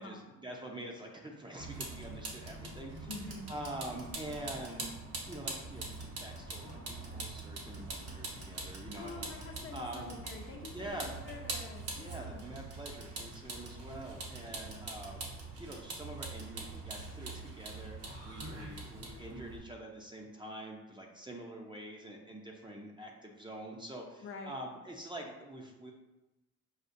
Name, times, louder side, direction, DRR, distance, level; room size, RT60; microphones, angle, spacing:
voice 1, 0.0-4.9 5.3-10.1 10.7-11.2 12.0-25.9, right 1 dB, 15° right, 0 dB, 0.6 m, -46 dB
Vehicle, 1.6-19.6, right 2 dB, 55° right, 1.0 m, -43 dB
voice 2, 3.1-3.5 8.9-12.4 24.2-24.6, left 3 dB, 45° left, 2 dB, 0.7 m, -47 dB
6.4 x 2.3 x 2.6 m, 1.0 s
cardioid pair, 90°, 30 cm